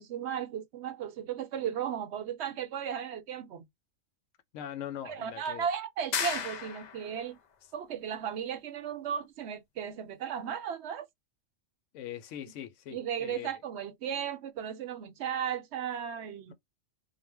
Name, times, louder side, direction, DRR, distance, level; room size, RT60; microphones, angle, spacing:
voice 1, 0.0-3.7 5.0-7.4 7.7-11.1 12.9-16.5, right 8 dB, 70° right, 0.8 m, -35 dB
voice 2, 4.5-5.7 11.9-13.6 16.5-16.6, left 10 dB, 85° left, 0.9 m, -41 dB
sound 1, 6.1-7.2, left 7 dB, 60° left, 0.4 m, -34 dB
2.4 x 2.1 x 3.2 m
omnidirectional pair, 1.2 m